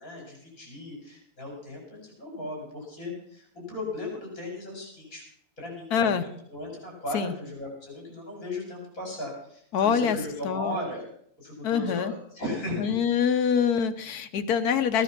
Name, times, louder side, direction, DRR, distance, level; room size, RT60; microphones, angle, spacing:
voice 1, 0.0-5.2 5.6-11.1 11.4-13.0, left 1 dB, 65° left, 0 dB, 5.8 m, -37 dB
voice 2, 5.9-6.2 7.1-7.3 9.7-10.2 10.4-10.8 11.6-12.1 12.8-15.0, left 7 dB, 90° left, 9 dB, 1.4 m, -25 dB
15.0 x 10.5 x 5.9 m, 0.65 s
omnidirectional pair, 1.6 m